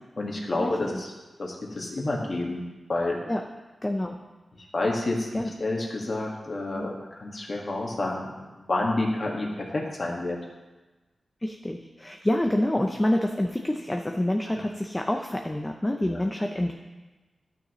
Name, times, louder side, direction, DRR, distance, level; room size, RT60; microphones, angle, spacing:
voice 1, 0.2-1.1 1.4-2.6 2.9-3.3 4.7-5.3 5.6-10.4 16.1-16.2, left 2 dB, 45° left, -1 dB, 1.8 m, -29 dB
voice 2, 3.8-4.2 5.3-5.5 6.7-6.9 11.4-16.7, left 1 dB, 15° left, 3 dB, 0.6 m, -27 dB
12.0 x 6.4 x 3.1 m, 1.2 s
wide cardioid pair, 80°, 0 cm